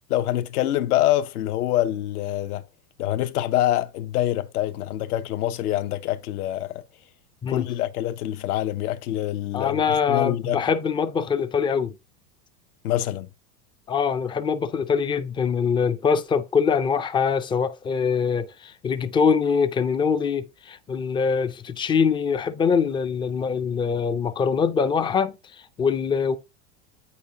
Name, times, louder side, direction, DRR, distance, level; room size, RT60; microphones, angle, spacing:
voice 1, 0.1-2.6 3.0-6.8 7.5-10.6 12.8-13.3, left 13 dB, 75° left, 0.9 m, -25 dB
voice 2, 9.5-11.9 13.9-25.3 25.8-26.4, left 6 dB, 10° left, 0.3 m, -23 dB
8.1 x 5.6 x 2.8 m
hypercardioid pair, 105°, 45 cm